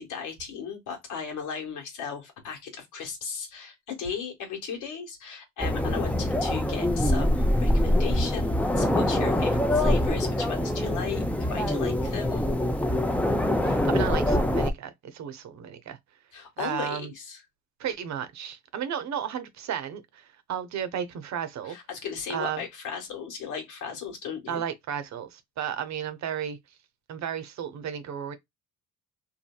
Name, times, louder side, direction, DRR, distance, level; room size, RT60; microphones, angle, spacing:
voice 1, 0.0-11.2 11.5-12.5 16.3-17.4 21.6-24.6, left 6 dB, 85° left, 1.4 m, -36 dB
sound 1, 5.6-14.7, left 1 dB, 5° left, 0.5 m, -24 dB
voice 2, 13.6-16.0 16.6-17.1 17.8-21.8 22.3-22.6 24.5-26.6 27.1-28.4, right 9 dB, 65° right, 0.7 m, -33 dB
2.8 x 2.6 x 2.2 m
cardioid pair, 90°, 30 cm